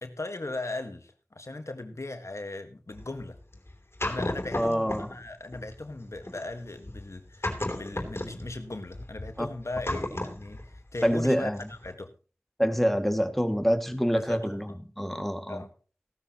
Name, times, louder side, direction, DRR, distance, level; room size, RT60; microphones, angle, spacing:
voice 1, 0.0-3.4 4.1-12.1 14.1-14.8 15.5-15.7, left 2 dB, 85° left, 7 dB, 1.5 m, -38 dB
sound 1, 2.9-5.2 5.5-11.3 11.6-11.9, left 1 dB, 55° left, 3.1 m, -35 dB
voice 2, 4.6-5.1 9.4-9.5 11.0-11.6 12.6-14.7 15.0-15.6, equal, 5° left, 7 dB, 2.1 m, -26 dB
16.5 x 13.0 x 3.0 m, 0.36 s
wide cardioid pair, 45°, 5 cm